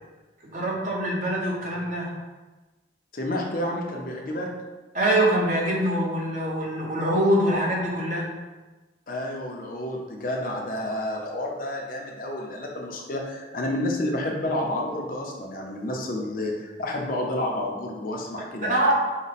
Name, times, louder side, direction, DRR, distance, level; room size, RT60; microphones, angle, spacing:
voice 1, 0.4-2.2 4.9-8.3 18.7-19.0, right 1 dB, 45° right, -3 dB, 1.0 m, -24 dB
voice 2, 3.1-4.5 9.1-19.0, left 1 dB, 50° left, 0 dB, 0.6 m, -30 dB
5.1 x 2.2 x 4.1 m, 1.2 s
head